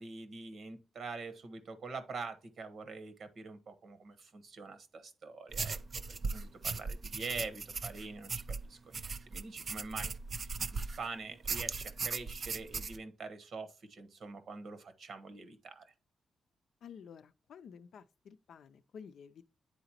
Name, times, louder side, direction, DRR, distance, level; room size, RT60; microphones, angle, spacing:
voice 1, 0.0-5.8 6.1-10.1 10.4-15.9, right 4 dB, 65° right, 1.2 m, -45 dB
sound 1, 5.5-11.1 11.4-13.0, right 4 dB, 50° right, 0.4 m, -38 dB
voice 2, 16.8-19.5, left 7 dB, 75° left, 0.5 m, -52 dB
9.4 x 3.9 x 2.8 m
cardioid pair, 80°, 0 cm